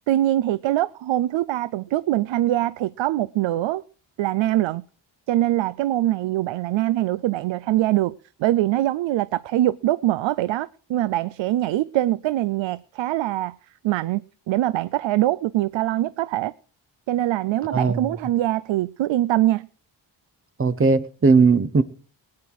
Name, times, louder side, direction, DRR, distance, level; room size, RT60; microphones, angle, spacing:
voice 1, 0.1-3.8 4.2-4.8 5.3-8.1 8.4-13.5 13.8-16.5 17.1-19.7, right 14 dB, 85° right, 0.5 m, -23 dB
voice 2, 17.7-18.2 20.6-21.8, right 4 dB, 30° right, 0.8 m, -18 dB
19.0 x 9.7 x 4.6 m
cardioid pair, 105°, 44 cm